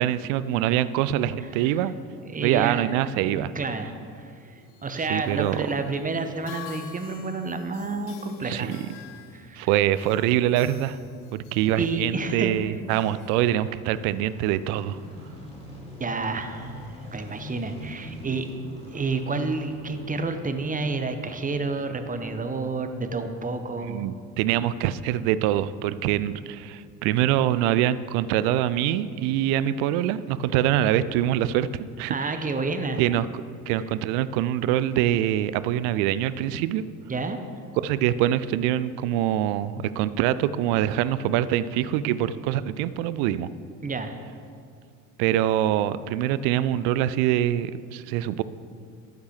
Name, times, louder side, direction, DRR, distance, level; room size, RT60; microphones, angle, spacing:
voice 1, 0.0-1.9 2.4-3.5 5.1-5.6 8.5-8.9 9.6-11.0 11.3-15.0 23.9-32.3 33.0-33.3 33.7-36.8 37.8-43.5 45.2-48.4, right 12 dB, 55° right, 16 dB, 0.5 m, -24 dB
voice 2, 2.2-2.9 3.2-8.8 9.3-9.7 11.8-12.8 16.0-18.5 18.9-24.1 32.1-33.0 33.7-33.8 37.1-37.4 43.8-44.2, right 3 dB, 15° right, 8 dB, 0.8 m, -30 dB
sound 1, 4.5-14.1, left 8 dB, 65° left, 1.0 m, -48 dB
sound 2, 9.2-24.2 24.5-24.6, equal, 15° left, 2.7 m, -45 dB
12.5 x 8.9 x 3.3 m, 2.3 s
figure-of-eight pair, 60°, 47 cm